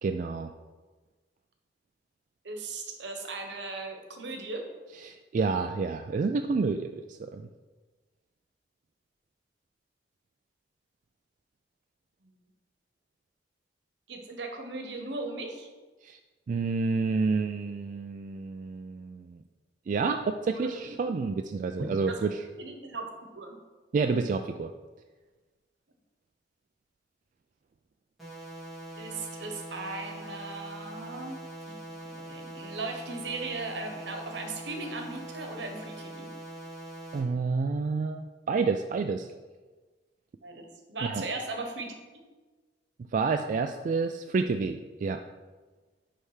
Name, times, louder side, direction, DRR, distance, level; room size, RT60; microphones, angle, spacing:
voice 1, 0.0-0.5 5.0-7.5 16.0-16.2 16.5-19.4 19.9-22.4 23.9-24.7 37.1-39.3 41.0-41.2 43.1-45.2, right 4 dB, 45° right, 6 dB, 0.3 m, -29 dB
voice 2, 2.4-4.7 12.2-12.3 14.1-15.7 20.5-21.0 21.8-22.2 22.6-23.5 29.0-31.4 31.7-36.3 40.4-41.9, right 3 dB, 75° right, 4 dB, 1.1 m, -38 dB
sound 1, 28.2-37.2, right 1 dB, ahead, 2.4 m, -43 dB
9.8 x 3.4 x 4.9 m, 1.3 s
head